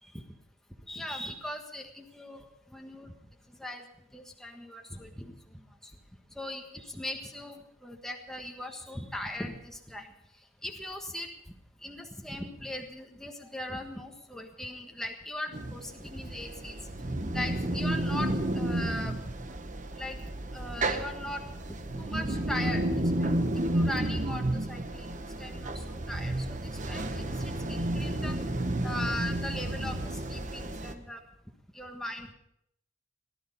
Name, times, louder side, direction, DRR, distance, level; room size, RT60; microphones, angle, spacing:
voice 1, 0.9-2.4 2.7-3.1 3.6-3.8 4.1-5.3 6.4-10.1 10.6-11.3 11.8-16.7 17.1-19.2 20.0-20.2 20.5-21.5 21.9-28.4 28.6-31.2 31.7-32.3, left 1 dB, ahead, 2 dB, 1.4 m, -39 dB
sound 1, 15.5-30.9, right 1 dB, 40° right, 1.0 m, -32 dB
18.0 x 12.5 x 5.4 m, 0.77 s
head